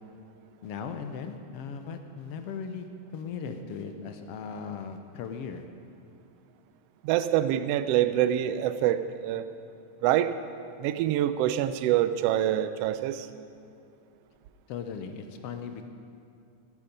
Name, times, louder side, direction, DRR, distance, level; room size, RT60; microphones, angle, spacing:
voice 1, 0.6-2.8 3.1-5.7 14.7-15.9, left 6 dB, 70° left, 7 dB, 1.5 m, -38 dB
voice 2, 7.0-9.4 10.0-10.3 10.8-13.3, right 12 dB, 80° right, 12 dB, 1.4 m, -25 dB
16.5 x 9.9 x 5.2 m, 2.4 s
omnidirectional pair, 3.3 m